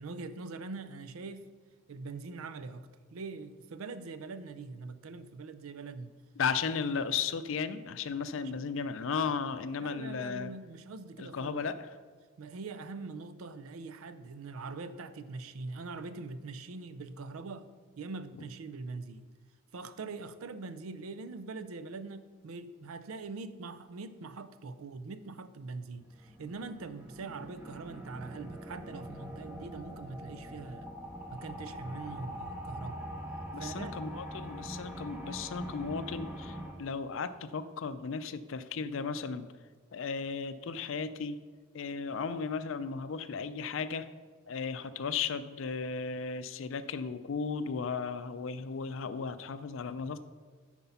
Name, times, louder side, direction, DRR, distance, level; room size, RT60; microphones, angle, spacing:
voice 1, 0.0-1.5 1.9-6.1 9.8-11.6 12.4-17.7 18.0-19.3 19.7-30.9 31.3-33.0 33.6-34.0, right 3 dB, 85° right, 13 dB, 0.5 m, -43 dB
voice 2, 6.4-10.5 11.2-11.9 33.5-39.5 39.9-41.4 41.7-44.1 44.5-50.2, left 5 dB, 70° left, 12 dB, 0.4 m, -35 dB
sound 1, 26.0-36.7, equal, 10° right, 0.9 m, -43 dB
9.7 x 4.5 x 5.6 m, 1.5 s
head